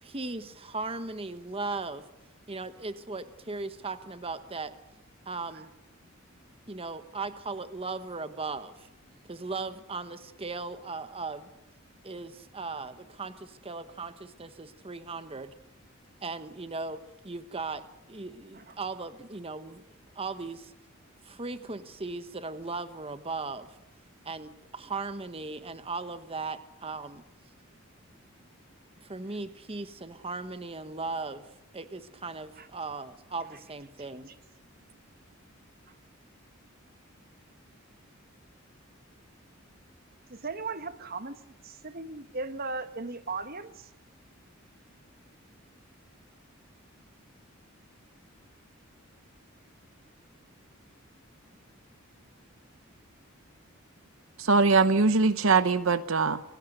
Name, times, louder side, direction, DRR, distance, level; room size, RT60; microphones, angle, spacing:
voice 1, 0.0-2.0 2.5-4.7 5.3-5.7 6.7-8.9 9.3-11.5 12.0-15.5 16.2-19.8 20.2-20.7 21.2-23.8 24.2-27.2 29.0-31.4 31.7-34.3, right 3 dB, 25° right, 1.1 m, -37 dB
voice 2, 40.3-41.4 41.6-43.9, right 3 dB, 45° right, 1.5 m, -37 dB
voice 3, 54.4-56.4, right 4 dB, 70° right, 0.9 m, -22 dB
29.0 x 17.5 x 6.7 m
head